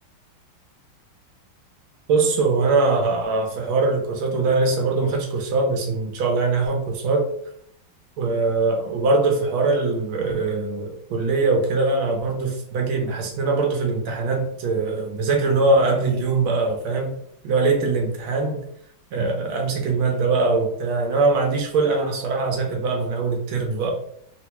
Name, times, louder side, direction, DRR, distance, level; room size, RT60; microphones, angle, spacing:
voice 1, 2.1-7.3 8.2-17.1 17.4-18.6 19.1-23.9, right 3 dB, 85° right, 2 dB, 1.5 m, -22 dB
3.7 x 2.1 x 2.9 m, 0.67 s
omnidirectional pair, 2.2 m